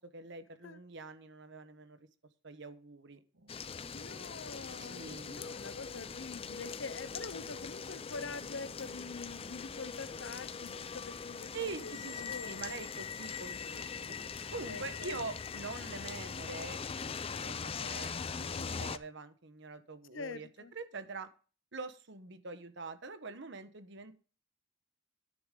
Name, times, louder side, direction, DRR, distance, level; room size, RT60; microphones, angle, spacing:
voice 1, 0.1-2.0 2.4-3.2 4.7-5.5 11.5-14.2 14.5-16.8 17.4-21.3 21.7-24.1, right 3 dB, 60° right, 1.1 m, -44 dB
sound 1, 3.3-14.9, right 1 dB, 85° right, 1.4 m, -62 dB
sound 2, 3.5-19.0, left 6 dB, 30° left, 0.5 m, -41 dB
voice 2, 3.9-12.6 14.7-15.2 18.4-18.7 20.1-20.7, left 4 dB, 65° left, 0.8 m, -45 dB
10.0 x 9.9 x 3.8 m
head